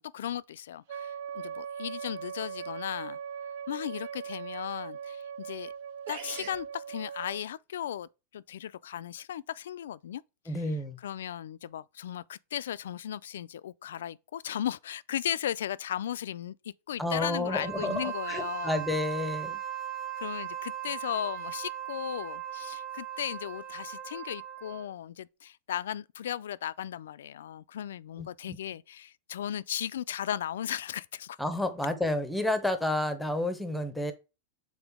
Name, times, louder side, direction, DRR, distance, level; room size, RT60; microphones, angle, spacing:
voice 1, 0.0-3.2 3.7-5.7 6.1-8.1 8.3-10.2 11.0-18.8 20.2-31.4, left 10 dB, 85° left, 0.3 m, -36 dB
Wind instrument woodwind instrument, 0.9-7.4, right 7 dB, 55° right, 0.4 m, -40 dB
sound 1, 5.7-5.8 6.1-6.6, right 7 dB, 85° right, 1.5 m, -42 dB
voice 2, 10.5-11.0 17.0-19.6 28.2-28.6 31.4-34.1, left 1 dB, ahead, 0.8 m, -30 dB
Wind instrument woodwind instrument 2, 17.4-24.9, right 11 dB, 15° right, 1.5 m, -38 dB
7.1 x 3.8 x 3.6 m
supercardioid pair, 155°, 0 cm